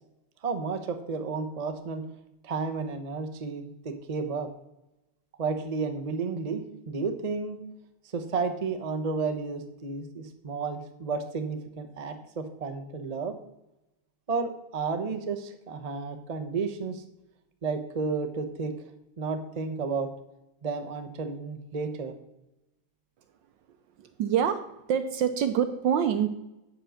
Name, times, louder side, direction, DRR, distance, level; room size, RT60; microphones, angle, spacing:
voice 1, 0.4-2.0 2.4-4.5 5.4-7.6 8.1-13.3 14.3-17.0 17.6-18.7 19.2-20.1 20.6-22.1, right 4 dB, 30° right, 7 dB, 0.8 m, -32 dB
voice 2, 24.0-26.3, right 8 dB, 70° right, 9 dB, 1.3 m, -26 dB
8.6 x 7.7 x 6.4 m, 0.89 s
omnidirectional pair, 2.3 m